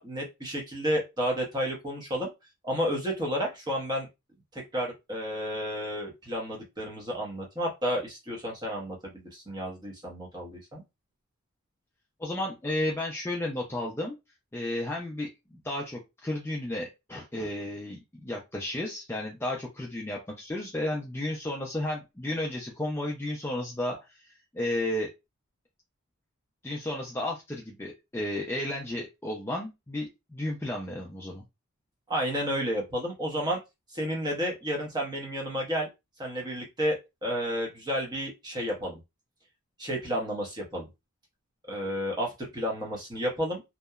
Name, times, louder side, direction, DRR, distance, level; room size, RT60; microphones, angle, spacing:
voice 1, 0.0-2.3 2.6-4.1 4.5-10.8 32.1-33.6 33.9-35.9 36.2-39.0 39.8-40.9 41.7-43.6, equal, 20° right, -1 dB, 0.7 m, -31 dB
voice 2, 12.2-14.2 14.5-25.1 26.6-31.4, left 1 dB, 10° left, -1 dB, 0.3 m, -33 dB
2.8 x 2.1 x 2.3 m, 0.23 s
head